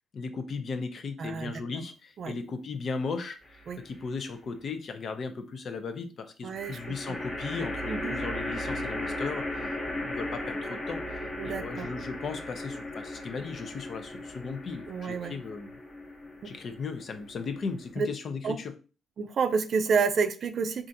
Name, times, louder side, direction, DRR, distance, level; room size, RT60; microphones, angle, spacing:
voice 1, 0.1-9.7 10.0-15.7 16.4-18.7, left 4 dB, 50° left, 0.5 m, -37 dB
voice 2, 1.2-1.8 2.2-2.3 3.7-3.8 6.4-6.8 7.1-7.2 7.9-8.2 11.4-11.9 14.9-15.3 16.4-16.5 18.0-18.1 18.4-18.6 19.2-20.9, right 5 dB, 55° right, 0.4 m, -29 dB
sound 1, 3.4-4.1 6.5-17.9, left 1 dB, 25° left, 0.8 m, -37 dB
4.0 x 2.4 x 2.6 m
cardioid pair, 90°, 0 cm